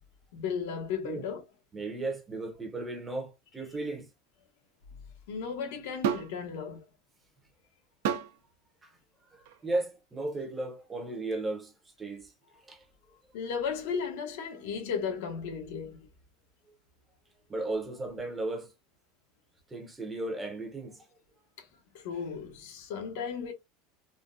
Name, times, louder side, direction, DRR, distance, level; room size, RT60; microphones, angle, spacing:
voice 1, 0.3-1.4 5.3-6.8 13.3-16.0 21.6-21.7 21.9-23.5, left 6 dB, 70° left, 1.0 m, -35 dB
voice 2, 1.7-4.1 8.8-8.9 9.3-11.7 12.0-12.3 12.7-12.8 17.5-18.7 19.7-21.0, right 2 dB, 10° right, 0.7 m, -35 dB
sound 1, 6.0-6.4 8.0-8.4 9.4-9.6, right 8 dB, 70° right, 0.5 m, -30 dB
3.6 x 2.2 x 2.5 m
supercardioid pair, 165°, 0 cm